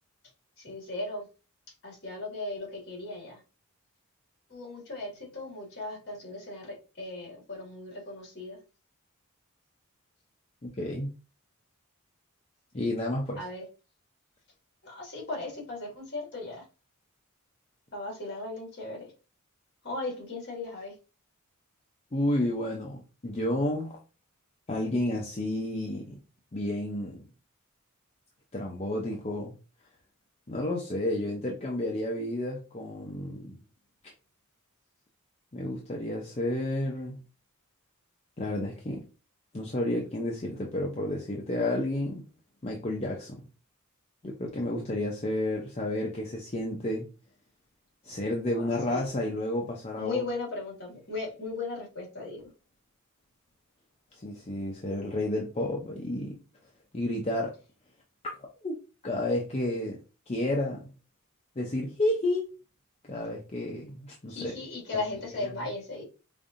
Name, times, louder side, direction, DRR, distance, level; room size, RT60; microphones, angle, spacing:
voice 1, 0.6-1.3 1.8-3.4 4.5-8.6 13.4-13.6 14.8-16.6 17.9-19.1 19.8-20.9 48.5-49.0 50.0-52.4 64.3-66.0, left 2 dB, 50° left, -2 dB, 1.9 m, -37 dB
voice 2, 10.6-11.1 12.7-13.4 22.1-24.0 24.7-26.2 26.5-27.2 28.5-29.5 30.5-33.5 34.0-34.1 35.5-37.2 38.4-39.0 39.5-42.2 42.6-43.4 44.2-47.0 48.0-50.2 54.1-56.4 56.9-57.6 58.2-58.3 58.6-58.8 59.0-60.0 60.3-60.9 61.6-62.5 63.1-64.5, left 1 dB, 30° left, -1 dB, 0.5 m, -31 dB
5.1 x 2.6 x 2.5 m, 0.33 s
head